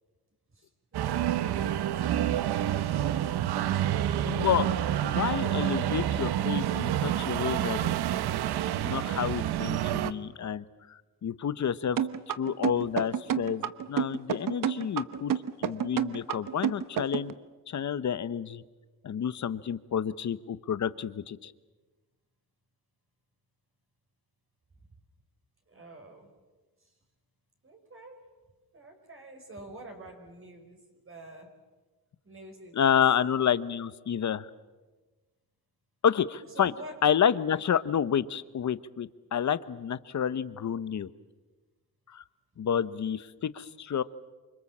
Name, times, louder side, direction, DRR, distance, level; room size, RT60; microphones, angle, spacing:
voice 1, 0.5-3.2 3.6-4.3 25.7-26.3 27.6-28.3 28.7-31.5 32.2-32.9 36.5-37.1 37.5-37.6, right 2 dB, 35° right, 3 dB, 5.3 m, -48 dB
sound 1, 0.9-10.1, right 11 dB, 75° right, 1.0 m, -28 dB
voice 2, 4.2-4.7 5.0-7.9 8.8-12.0 12.4-15.3 15.6-17.3 17.7-18.6 19.0-21.5 32.7-34.5 36.0-36.7 37.0-41.1 42.1-42.2 42.6-44.0, left 8 dB, 45° left, 14 dB, 1.1 m, -29 dB
sound 2, 12.0-17.3, right 9 dB, 55° right, 1.2 m, -29 dB
28.0 x 25.0 x 7.4 m, 1.2 s
cardioid pair, 100°, 39 cm